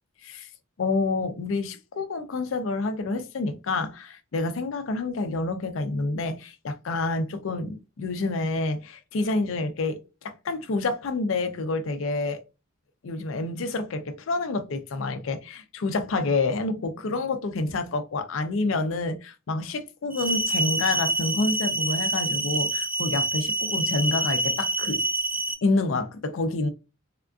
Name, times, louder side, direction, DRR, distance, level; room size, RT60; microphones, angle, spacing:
voice 1, 0.8-12.4 13.0-25.0 25.6-26.7, left 3 dB, 75° left, 0.5 m, -28 dB
sound 1, 20.1-25.5, right 2 dB, 5° right, 0.4 m, -27 dB
3.5 x 2.4 x 2.3 m
head